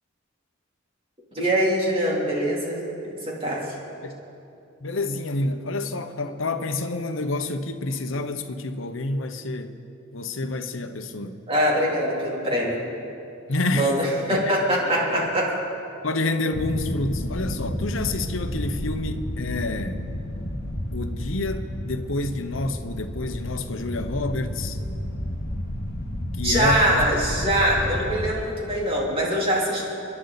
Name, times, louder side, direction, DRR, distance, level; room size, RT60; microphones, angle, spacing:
voice 1, 1.3-2.8 3.0-3.6 11.5-12.8 13.7-15.5 26.4-29.8, right 1 dB, 30° right, 3.3 m, -23 dB
voice 2, 4.8-9.7 10.1-11.4 13.5-13.9 14.3-14.4 14.8-15.3 16.0-20.0 20.9-24.8 26.3-27.1, left 2 dB, 75° left, 0.9 m, -28 dB
sound 1, 16.5-28.3, left 1 dB, 55° left, 1.3 m, -31 dB
29.5 x 11.0 x 4.1 m
head